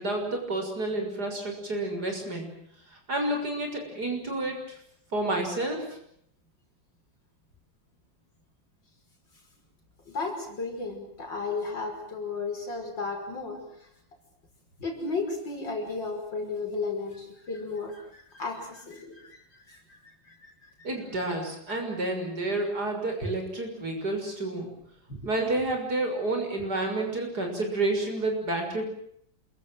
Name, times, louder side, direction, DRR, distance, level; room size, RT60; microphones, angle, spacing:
voice 1, 0.0-2.5 2.9-4.8 5.1-5.9 20.8-24.7 25.2-28.9, right 2 dB, 55° right, 3 dB, 6.9 m, -30 dB
voice 2, 10.1-13.9 14.8-20.5 20.8-20.9 23.2-23.3 25.1-25.2, left 3 dB, 65° left, 3 dB, 6.3 m, -34 dB
27.5 x 23.0 x 7.8 m, 0.70 s
omnidirectional pair, 2.1 m